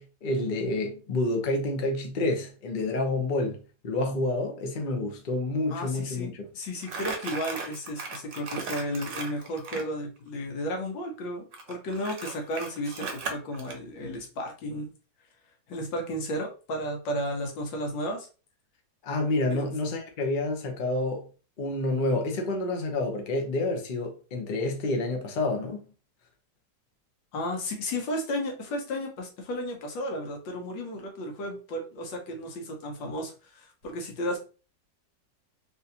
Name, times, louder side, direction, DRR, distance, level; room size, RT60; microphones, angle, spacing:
voice 1, 0.0-6.5 19.0-21.3 21.6-25.8, left 2 dB, 65° left, 0.5 m, -29 dB
voice 2, 5.7-14.9 15.7-18.3 19.5-19.6 27.3-34.4, equal, 90° left, 1.7 m, -33 dB
Crumpling crinkling, 6.8-9.9 11.5-13.8, right 4 dB, 60° right, 1.0 m, -36 dB
3.6 x 2.6 x 2.7 m
omnidirectional pair, 2.0 m